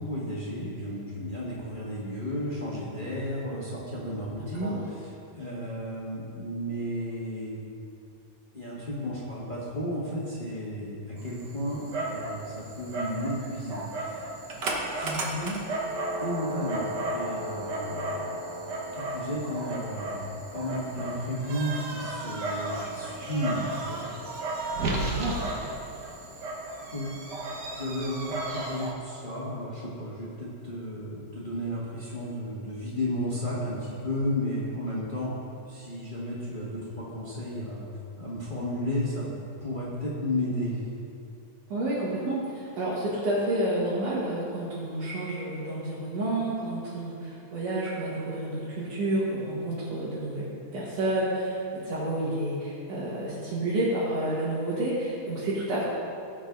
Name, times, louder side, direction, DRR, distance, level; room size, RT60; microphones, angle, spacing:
voice 1, 0.0-7.6 8.5-14.2 14.9-15.7 16.2-18.2 18.9-20.2 20.5-24.0 26.9-27.2 27.7-35.3 35.7-37.8 38.2-39.3 39.6-40.8, equal, 30° left, -6 dB, 1.0 m, -33 dB
Dog, 11.2-28.9, right 2 dB, 60° right, 1.1 m, -34 dB
voice 2, 24.8-25.4 41.7-55.8, right 1 dB, 75° right, -10 dB, 3.4 m, -30 dB
17.5 x 6.3 x 3.9 m, 2.7 s
omnidirectional pair, 3.6 m